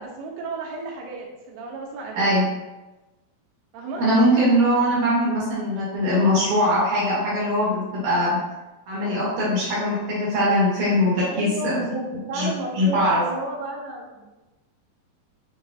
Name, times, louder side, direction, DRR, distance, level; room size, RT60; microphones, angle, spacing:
voice 1, 0.0-2.4 3.7-4.0 11.3-14.2, right 2 dB, 90° right, -1 dB, 2.8 m, -32 dB
voice 2, 2.1-2.5 4.0-8.4 8.9-11.8 12.3-13.2, equal, 65° right, -7 dB, 2.2 m, -21 dB
7.6 x 2.7 x 2.3 m, 1.1 s
omnidirectional pair, 4.6 m